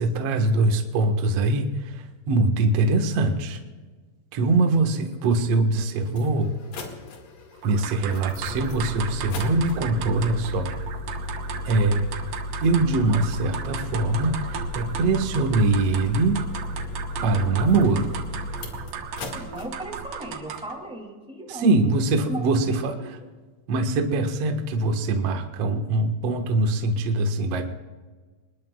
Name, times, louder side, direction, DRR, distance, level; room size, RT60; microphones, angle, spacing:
voice 1, 0.0-3.6 4.3-6.5 7.6-10.7 11.6-12.1 12.6-16.4 17.2-18.1 21.5-23.2 23.7-27.6, right 2 dB, 85° right, 4 dB, 1.4 m, -23 dB
sound 1, 5.4-5.5 6.0-19.7, left 2 dB, 45° left, 2.4 m, -35 dB
sound 2, 7.6-20.8, right 7 dB, 65° right, 2.4 m, -36 dB
voice 2, 19.3-21.7 22.3-23.1, right 1 dB, 5° right, 0 dB, 1.0 m, -36 dB
24.5 x 21.0 x 2.4 m, 1.4 s
omnidirectional pair, 5.6 m